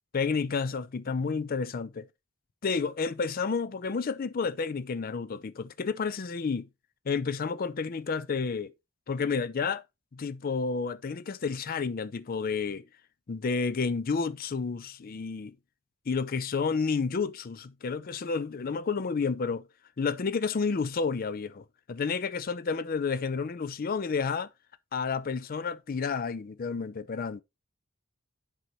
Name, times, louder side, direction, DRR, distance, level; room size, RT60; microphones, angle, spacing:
voice 1, 0.1-2.1 2.6-6.7 7.1-8.7 9.1-9.8 10.1-12.8 13.3-15.6 16.1-19.6 20.0-24.5 24.9-27.4, left 5 dB, 45° left, 0.4 m, -30 dB
7.8 x 5.6 x 3.1 m
head